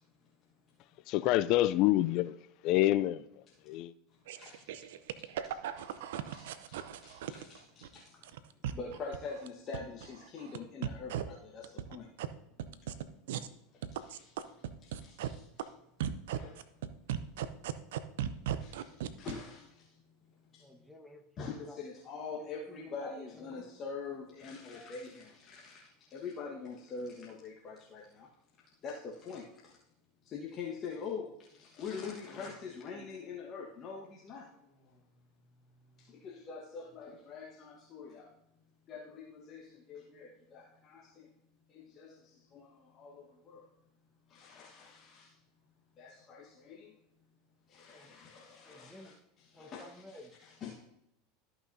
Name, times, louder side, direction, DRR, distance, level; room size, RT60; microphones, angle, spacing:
voice 1, 1.1-2.3 2.6-3.3 3.7-3.9, left 15 dB, 55° left, 0.3 m, -27 dB
voice 2, 3.5-3.8 4.3-8.2 8.6-12.1 12.8-12.9 13.7-15.7 16.3-16.6 17.2-17.3 17.6-20.0 20.4-20.8 21.4-28.3 28.8-29.7 30.2-35.0 35.9-38.3 38.9-41.3 41.7-43.7 44.3-45.4 46.0-46.9 47.7-50.8, left 5 dB, 40° left, 1.4 m, -45 dB
sound 1, 4.3-7.9 8.2-9.5 9.7-10.6 10.8-11.2 11.6-12.3 12.6-13.5 13.8-15.3 15.6-15.7 16.0-19.3, right 11 dB, 75° right, 0.6 m, -37 dB
voice 3, 20.6-21.8 22.4-23.7 47.9-48.1 48.6-49.2 49.5-50.3, left 1 dB, 5° left, 1.3 m, -53 dB
13.5 x 5.8 x 2.7 m
hypercardioid pair, 95°, 0 cm